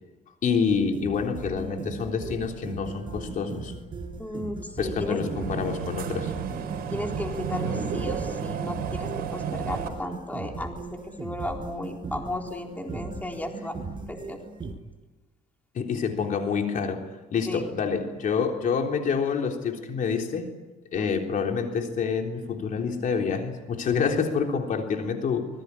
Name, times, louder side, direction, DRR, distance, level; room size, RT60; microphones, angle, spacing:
voice 1, 0.4-3.7 4.8-6.3 15.7-17.0 17.3-20.5 20.9-25.5, left 6 dB, 50° left, 3 dB, 3.7 m, -27 dB
sound 1, 0.7-14.7, right 4 dB, 30° right, 7.0 m, -38 dB
voice 2, 4.2-5.2 6.9-13.7 14.1-14.4 17.5-17.8 21.0-21.1, left 1 dB, 10° left, 2 dB, 3.9 m, -34 dB
sound 2, 4.9-9.9, right 6 dB, 65° right, 5.1 m, -32 dB
25.5 x 21.5 x 9.9 m, 1.2 s
cardioid pair, 110°, 17 cm